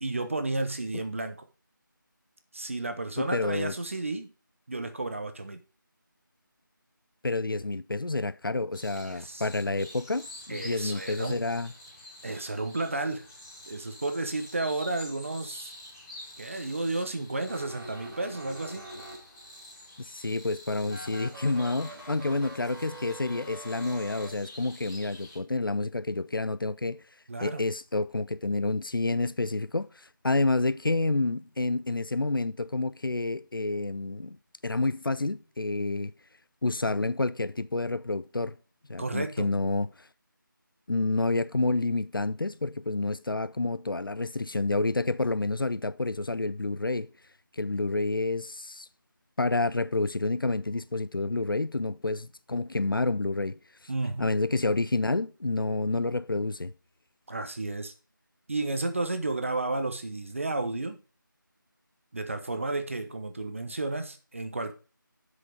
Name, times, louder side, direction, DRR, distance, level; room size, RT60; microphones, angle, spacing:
voice 1, 0.0-1.4 2.5-4.3 4.7-5.6 9.1-9.7 10.5-11.5 12.2-13.3 13.7-15.7 16.4-18.8 27.3-27.6 39.0-39.5 53.9-54.3 57.3-57.9 58.5-61.0 62.1-64.7, right 2 dB, 35° right, 1.0 m, -32 dB
voice 2, 3.2-3.7 7.2-11.7 20.0-27.0 27.4-34.4 34.6-36.1 36.6-38.6 38.9-40.1 40.9-47.1 47.5-48.9 49.4-53.6 54.2-56.7, left 2 dB, 85° left, 0.6 m, -29 dB
sound 1, 8.7-25.4, left 1 dB, 15° left, 2.5 m, -48 dB
sound 2, 17.4-19.6 20.8-24.3, right 1 dB, 15° right, 5.1 m, -44 dB
7.9 x 6.4 x 5.1 m
figure-of-eight pair, 170°, 11 cm